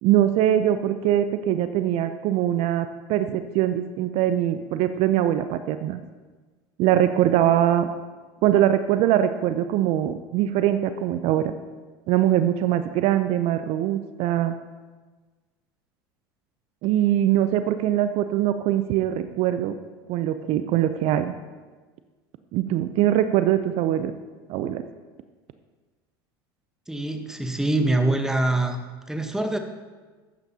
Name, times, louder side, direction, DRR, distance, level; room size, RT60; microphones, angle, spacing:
voice 1, 0.0-6.0 6.8-7.9 8.4-11.5 12.1-14.5 16.8-19.8 20.1-21.3 22.5-24.1 24.5-24.8, right 12 dB, 55° right, 10 dB, 0.5 m, -22 dB
voice 2, 26.9-28.8 29.1-29.6, right 2 dB, 5° right, 6 dB, 1.0 m, -24 dB
12.0 x 9.2 x 2.8 m, 1.3 s
hypercardioid pair, 90°, 12 cm